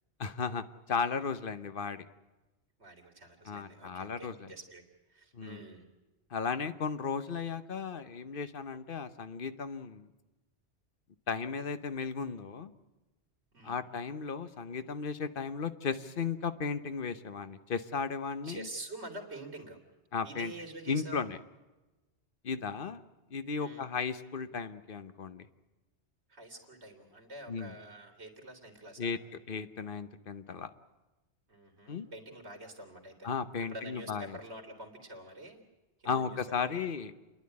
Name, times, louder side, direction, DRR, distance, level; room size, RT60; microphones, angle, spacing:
voice 1, 0.2-2.1 3.4-4.5 5.3-5.6 6.3-10.1 11.3-12.7 13.6-18.7 20.1-20.5 20.9-21.4 22.4-23.0 23.3-25.5 27.5-27.8 29.0-29.2 29.5-30.7 31.9-32.1 33.2-34.4 36.0-37.1, left 5 dB, 55° left, 11 dB, 1.1 m, -35 dB
voice 2, 2.8-5.9 13.5-13.8 18.4-19.8 20.2-21.3 23.6-23.9 26.3-29.2 31.5-33.3 33.6-35.6 36.0-36.9, right 1 dB, 80° right, 3 dB, 3.1 m, -47 dB
29.0 x 10.5 x 9.7 m, 1.1 s
omnidirectional pair, 1.1 m